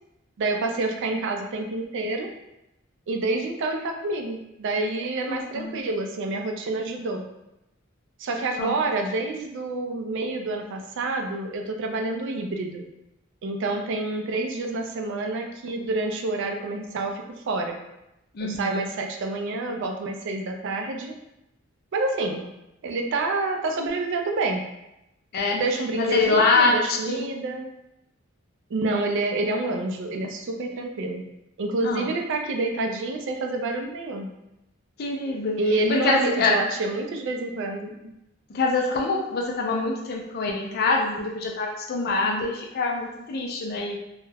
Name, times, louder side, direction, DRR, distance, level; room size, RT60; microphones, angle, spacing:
voice 1, 0.4-2.3 3.1-7.2 8.2-12.9 13.4-17.8 18.4-21.2 21.9-22.5 22.8-24.6 25.5-27.7 28.7-31.2 31.6-34.3 35.6-38.1, right 2 dB, 60° right, 3 dB, 0.4 m, -28 dB
voice 2, 5.3-5.8 8.6-8.8 18.3-18.8 25.3-25.6 26.0-27.3 31.8-32.1 35.0-35.6 35.9-36.5 38.5-44.0, left 3 dB, 50° left, 1 dB, 0.4 m, -24 dB
2.3 x 2.0 x 3.3 m, 0.89 s
head